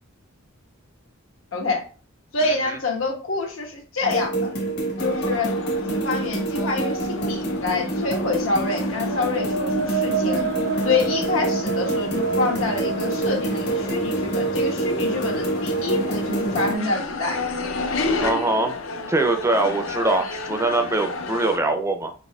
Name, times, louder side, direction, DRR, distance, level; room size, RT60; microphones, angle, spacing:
voice 1, 1.5-1.8 2.3-4.5 5.0-5.5 5.9-10.5 10.8-17.4, left 3 dB, 90° left, 1 dB, 1.3 m, -26 dB
sound 1, 4.0-16.8, right 2 dB, 55° left, 1.0 m, -26 dB
sound 2, 5.0-21.6, left 3 dB, 70° left, 0.5 m, -33 dB
sound 3, 8.7-14.5, right 4 dB, 80° right, 0.5 m, -29 dB
voice 2, 18.2-18.7 19.1-22.1, right 2 dB, 15° right, 6 dB, 0.4 m, -22 dB
4.5 x 4.0 x 2.3 m, 0.38 s
head